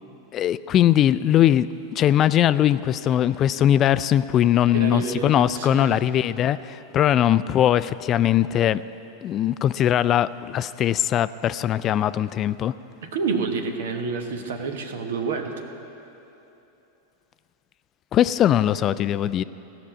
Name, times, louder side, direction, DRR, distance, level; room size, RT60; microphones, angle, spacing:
voice 1, 0.3-1.7 1.9-8.8 9.2-12.7 18.1-19.4, left 11 dB, 35° left, 16 dB, 0.3 m, -20 dB
voice 2, 4.7-6.0 13.0-15.7, right 4 dB, 70° right, 5 dB, 1.1 m, -28 dB
15.0 x 6.1 x 8.6 m, 3.0 s
hypercardioid pair, 95°, 0 cm